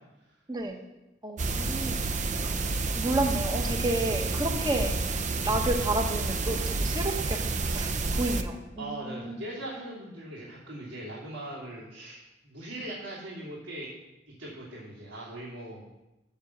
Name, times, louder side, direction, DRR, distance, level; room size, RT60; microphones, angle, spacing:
voice 1, 0.5-0.8 1.2-2.0 2.4-2.5 3.0-4.9 5.4-7.4 7.7-9.4, right 2 dB, 20° right, 3 dB, 1.2 m, -31 dB
sound 1, 1.4-8.4, right 3 dB, 40° right, 0.6 m, -29 dB
voice 2, 8.8-13.9 14.4-15.8, right 1 dB, 85° right, -9 dB, 3.1 m, -40 dB
7.3 x 7.0 x 7.5 m, 0.99 s
head